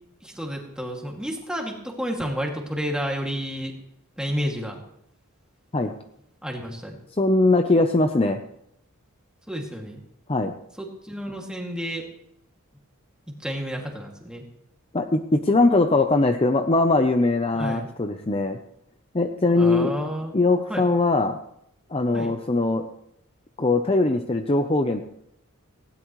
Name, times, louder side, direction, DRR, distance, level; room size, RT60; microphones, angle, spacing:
voice 1, 0.2-3.7 4.2-4.8 6.4-7.0 9.5-10.0 10.8-12.0 13.4-14.4 17.5-17.9 19.6-20.3 20.7-20.8 22.1-22.3, equal, 5° right, 0 dB, 2.3 m, -30 dB
voice 2, 7.2-8.4 10.3-10.5 14.9-18.6 19.1-19.9 20.3-21.4 21.9-22.9 23.6-25.1, left 2 dB, 25° left, 7 dB, 0.6 m, -21 dB
19.0 x 17.0 x 3.1 m, 0.75 s
head